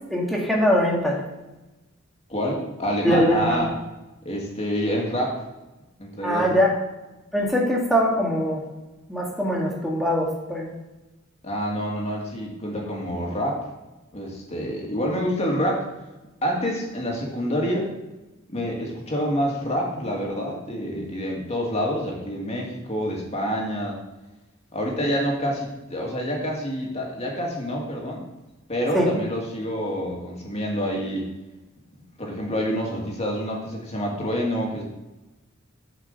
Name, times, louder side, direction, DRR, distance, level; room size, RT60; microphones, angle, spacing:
voice 1, 0.1-1.2 3.0-3.6 6.2-6.7 7.3-8.6 9.1-10.8 28.9-29.1, equal, ahead, -3 dB, 1.9 m, -22 dB
voice 2, 2.3-3.7 4.2-5.4 6.0-6.6 11.4-13.7 14.1-15.9 16.4-17.9 18.5-24.0 24.7-28.3 28.7-31.3 32.2-34.8, equal, 30° left, -1 dB, 2.1 m, -27 dB
7.7 x 5.1 x 6.6 m, 1.0 s
head